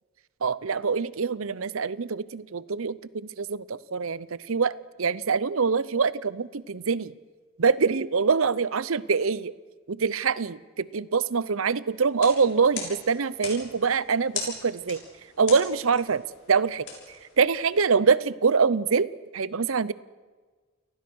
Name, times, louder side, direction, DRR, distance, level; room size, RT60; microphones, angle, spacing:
voice 1, 0.4-7.1 7.6-9.5 9.9-15.0 15.4-16.2 16.5-16.9 17.4-19.1 19.3-19.9, right 5 dB, 75° right, 19 dB, 0.7 m, -24 dB
sound 1, 12.0-17.9, left 5 dB, 55° left, 6.7 m, -40 dB
29.5 x 19.0 x 6.3 m, 1.4 s
head